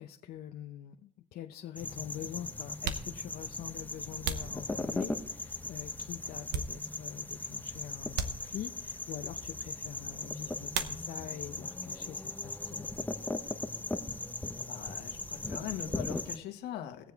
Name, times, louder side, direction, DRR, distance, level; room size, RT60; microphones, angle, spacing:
voice 1, 0.0-12.9, left 11 dB, 65° left, 4 dB, 0.7 m, -45 dB
sound 1, 0.9-1.0 2.0-2.1 2.7-5.3 5.8-7.2 7.5-7.7 8.1-8.9 10.7-11.5 11.7-12.4 12.7-14.9, right 6 dB, 80° right, 1.0 m, -40 dB
sound 2, 1.8-16.4, left 2 dB, 10° left, 0.8 m, -38 dB
voice 2, 14.7-17.1, left 10 dB, 85° left, 5 dB, 1.6 m, -41 dB
20.0 x 7.6 x 3.5 m, 0.73 s
cardioid pair, 110°, 17 cm